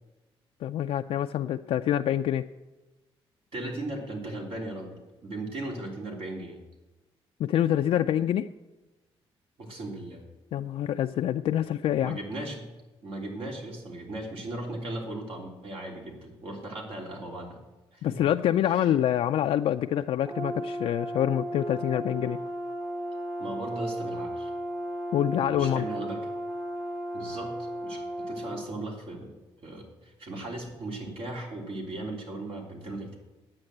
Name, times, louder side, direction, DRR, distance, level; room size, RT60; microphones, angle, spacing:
voice 1, 0.6-2.5 7.4-8.5 10.5-12.2 18.0-22.4 25.1-25.9, left 11 dB, 70° left, 6 dB, 0.4 m, -26 dB
voice 2, 3.5-6.6 9.6-10.2 12.0-12.7 13.0-17.6 17.9-18.2 18.6-18.9 23.4-24.5 25.3-26.2 27.1-27.5 27.8-29.3 29.6-33.2, right 2 dB, 70° right, 0 dB, 3.3 m, -37 dB
Brass instrument, 20.2-28.7, right 1 dB, 35° right, 1.4 m, -35 dB
9.8 x 8.2 x 7.9 m, 1.1 s
cardioid pair, 100°, 10 cm